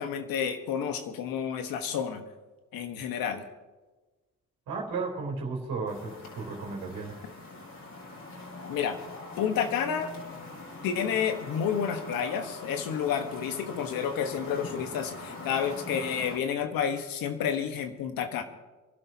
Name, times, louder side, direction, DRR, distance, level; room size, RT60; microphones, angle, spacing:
voice 1, 0.0-2.2 2.7-3.4 8.7-9.0 9.4-10.1 10.8-18.4, left 7 dB, 85° left, 7 dB, 1.3 m, -30 dB
voice 2, 4.7-7.2, right 4 dB, 85° right, 0 dB, 3.5 m, -34 dB
sound 1, 5.9-16.4, left 2 dB, 60° left, 4.7 m, -43 dB
25.5 x 12.0 x 2.8 m, 1.2 s
supercardioid pair, 50°, 34 cm